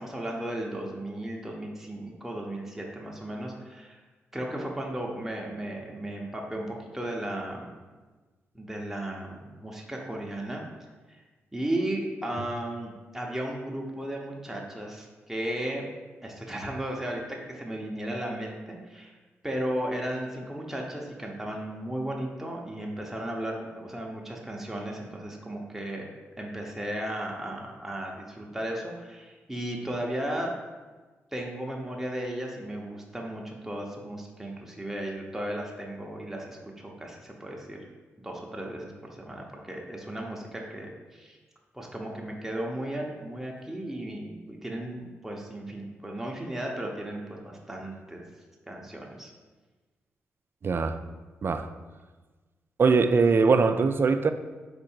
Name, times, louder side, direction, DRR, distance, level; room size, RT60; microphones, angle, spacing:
voice 1, 0.0-4.0 4.3-7.8 8.5-10.6 11.1-11.2 11.5-15.8 16.2-19.1 19.4-26.1 26.4-30.5 31.3-37.8 38.2-41.4 41.7-48.2 48.7-49.3, right 1 dB, 5° right, -1 dB, 0.8 m, -35 dB
voice 2, 50.6-51.0 51.4-51.7 52.8-54.3, right 4 dB, 45° right, 10 dB, 0.3 m, -22 dB
4.6 x 2.6 x 4.3 m, 1.3 s
supercardioid pair, 55°, 5 cm